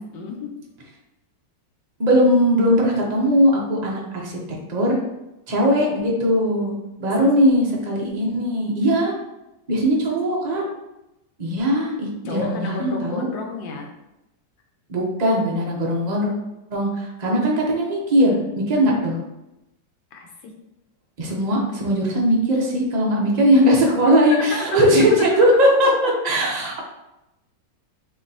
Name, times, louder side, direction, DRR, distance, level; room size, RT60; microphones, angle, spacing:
voice 1, 0.1-0.5 12.2-13.9 20.1-20.5 24.3-26.1, left 4 dB, 90° left, 1 dB, 1.5 m, -32 dB
voice 2, 2.0-4.3 4.7-5.0 5.5-9.1 9.7-10.6 11.4-13.3 14.9-16.3 16.7-18.4 18.7-19.2 21.2-25.9 26.2-26.8, equal, 40° right, -2 dB, 0.6 m, -19 dB
5.9 x 2.8 x 2.8 m, 0.93 s
omnidirectional pair, 1.9 m